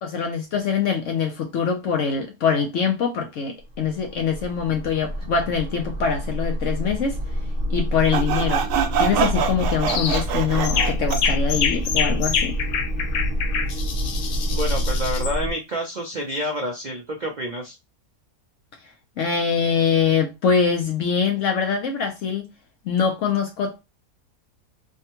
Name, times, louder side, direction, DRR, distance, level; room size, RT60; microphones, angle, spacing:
voice 1, 0.0-7.2 7.7-8.7 9.0-12.6 19.2-22.5 22.9-23.8, left 6 dB, 65° left, 0.8 m, -23 dB
sound 1, 3.6-15.5, equal, 35° right, 1.0 m, -27 dB
Sawing, 8.1-11.3, right 8 dB, 90° right, 1.2 m, -24 dB
sound 2, 9.9-10.2 10.6-15.4, left 7 dB, 85° left, 1.1 m, -26 dB
voice 2, 14.5-17.8, equal, 75° right, 0.4 m, -28 dB
3.5 x 2.2 x 2.8 m
omnidirectional pair, 1.6 m